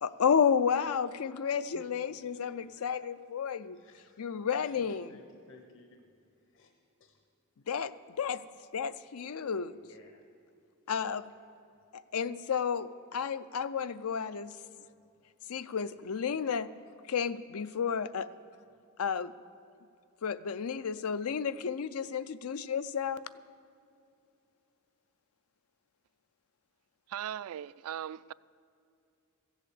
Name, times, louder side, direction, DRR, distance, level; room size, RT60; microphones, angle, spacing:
voice 1, 0.0-3.8 4.2-5.1 7.7-7.9 8.2-8.4 8.7-9.8 10.9-11.2 11.9-14.5 15.5-16.7 17.1-18.3 19.0-19.3 20.2-23.2, left 7 dB, 85° left, 0.5 m, -31 dB
voice 2, 3.8-4.2 4.5-6.0 6.5-6.7 7.0-7.2 9.8-10.2 13.8-13.9, left 3 dB, 60° left, 1.0 m, -57 dB
voice 3, 27.1-28.3, right 10 dB, 80° right, 0.3 m, -38 dB
14.5 x 8.0 x 8.4 m
head